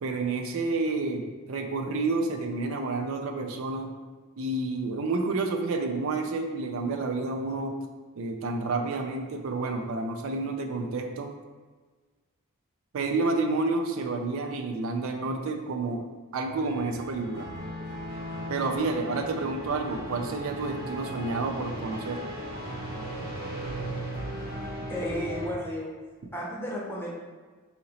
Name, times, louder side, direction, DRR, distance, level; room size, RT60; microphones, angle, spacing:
voice 1, 0.0-3.9 4.4-7.8 8.2-11.3 12.9-16.1 16.3-17.5 18.5-22.2, right 3 dB, 70° right, 4 dB, 0.4 m, -29 dB
sound 1, 16.4-25.5, equal, 45° right, 0.8 m, -37 dB
voice 2, 24.9-25.9 26.3-27.2, equal, 10° left, -4 dB, 0.6 m, -33 dB
2.8 x 2.8 x 4.1 m, 1.4 s
head